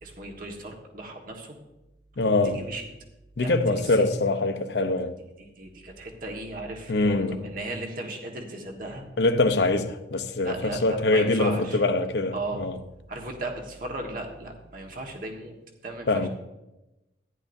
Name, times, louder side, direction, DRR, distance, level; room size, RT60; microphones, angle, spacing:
voice 1, 0.0-1.6 2.4-2.9 3.4-3.6 3.9-4.2 5.4-9.0 10.4-11.8 12.3-12.6 13.1-15.5 15.8-16.3, right 2 dB, 50° right, 1.5 m, -36 dB
voice 2, 2.2-2.7 3.4-5.1 6.9-7.4 9.2-12.8 16.1-16.3, left 2 dB, 75° left, 0.7 m, -24 dB
14.5 x 10.5 x 2.7 m
head